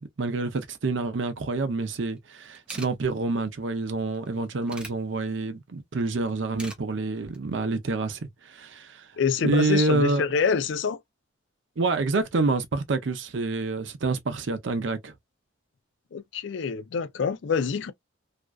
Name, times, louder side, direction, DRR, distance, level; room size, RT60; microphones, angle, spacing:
voice 1, 0.0-9.1 9.4-10.3 11.8-15.1, right 3 dB, 65° right, 0.6 m, -27 dB
sound 1, 2.2-2.3 2.4-2.9 4.1-4.9 6.3-6.8 7.2-7.4, right 1 dB, 5° right, 0.5 m, -41 dB
voice 2, 9.2-11.0 16.1-17.9, left 6 dB, 60° left, 0.4 m, -26 dB
2.5 x 2.2 x 2.3 m
head